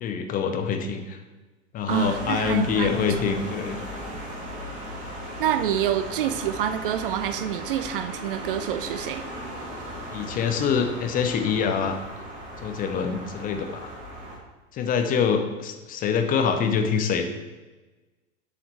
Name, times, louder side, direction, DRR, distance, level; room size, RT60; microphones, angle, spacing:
voice 1, 0.0-1.2 1.7-3.8 10.1-12.0 12.6-13.9 14.7-17.3, left 6 dB, 20° left, 6 dB, 0.7 m, -25 dB
sound 1, 1.9-14.4, equal, 20° right, 2.7 m, -37 dB
voice 2, 1.9-3.2 5.4-9.3, right 10 dB, 45° right, 11 dB, 0.5 m, -27 dB
7.6 x 6.5 x 4.4 m, 1.2 s
figure-of-eight pair, 95°, 38 cm